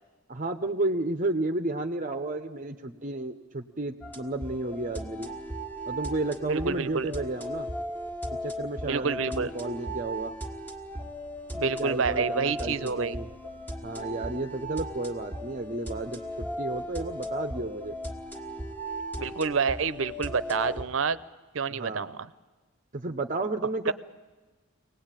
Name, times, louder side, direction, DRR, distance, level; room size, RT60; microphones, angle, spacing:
voice 1, 0.3-5.3 5.9-7.7 8.3-10.3 11.6-13.3 13.8-17.9 21.7-22.1 22.9-23.9, right 2 dB, 40° right, 7 dB, 0.7 m, -32 dB
sound 1, 4.0-20.8, equal, 10° left, 1.5 m, -37 dB
voice 2, 6.5-7.1 8.8-9.5 11.5-13.2 19.2-21.2 21.5-22.3 23.9-24.0, right 5 dB, 80° right, 16 dB, 0.7 m, -28 dB
24.5 x 18.5 x 9.0 m, 1.3 s
head